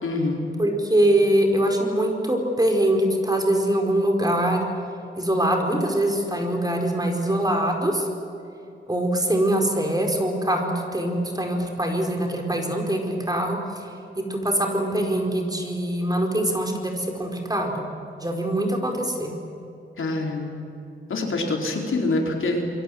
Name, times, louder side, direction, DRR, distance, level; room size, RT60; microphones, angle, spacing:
voice 1, 0.0-0.5 20.0-20.6 21.1-22.7, left 2 dB, 80° left, 1 dB, 4.5 m, -25 dB
voice 2, 0.6-4.7 5.2-8.1 8.9-13.9 14.2-17.9 18.2-19.3, right 1 dB, 20° right, 2 dB, 4.6 m, -23 dB
28.0 x 23.0 x 7.8 m, 2.7 s
wide cardioid pair, 105°, 21 cm